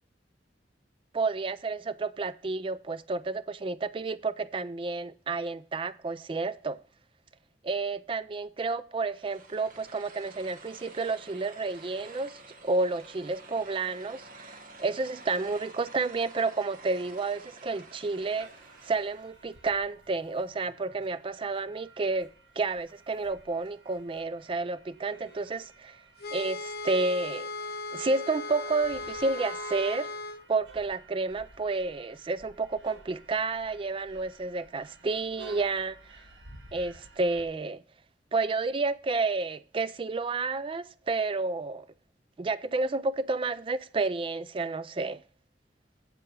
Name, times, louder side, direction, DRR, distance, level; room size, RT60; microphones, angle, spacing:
voice 1, 1.1-6.8 7.6-18.5 18.8-26.0 26.3-27.5 27.9-30.1 30.5-36.0 36.7-37.8 38.3-41.9 42.4-45.2, right 3 dB, 30° right, 0.3 m, -30 dB
sound 1, 9.1-19.4, right 2 dB, 50° right, 1.0 m, -50 dB
sound 2, 18.1-37.5, right 4 dB, 85° right, 1.7 m, -53 dB
sound 3, 26.2-30.4, left 3 dB, 55° left, 0.7 m, -37 dB
7.6 x 7.6 x 4.7 m
head